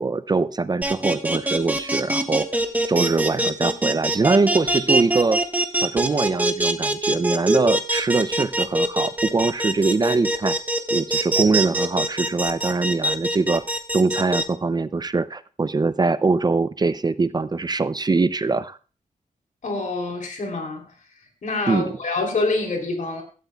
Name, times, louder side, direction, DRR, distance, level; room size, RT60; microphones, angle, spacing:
voice 1, 0.0-2.5 2.9-5.4 5.8-10.6 10.9-13.6 13.9-18.8 21.7-21.9, right 3 dB, 30° right, 14 dB, 0.4 m, -22 dB
sound 1, 0.8-14.4, right 1 dB, 10° right, 1.3 m, -23 dB
voice 2, 19.6-20.9 21.4-23.2, left 3 dB, 75° left, 2 dB, 3.2 m, -26 dB
16.5 x 13.0 x 2.3 m, 0.37 s
wide cardioid pair, 145°, 14 cm